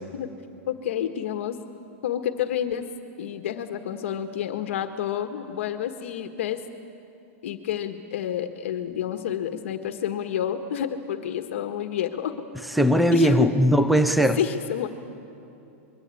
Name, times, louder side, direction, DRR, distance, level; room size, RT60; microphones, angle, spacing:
voice 1, 0.7-1.6 2.0-2.9 3.2-6.6 7.4-12.3 13.1-13.5 14.4-14.9, left 10 dB, 65° left, 7 dB, 1.5 m, -29 dB
voice 2, 12.8-14.4, equal, ahead, 10 dB, 0.7 m, -19 dB
25.5 x 22.5 x 8.5 m, 2.9 s
supercardioid pair, 175°, 7 cm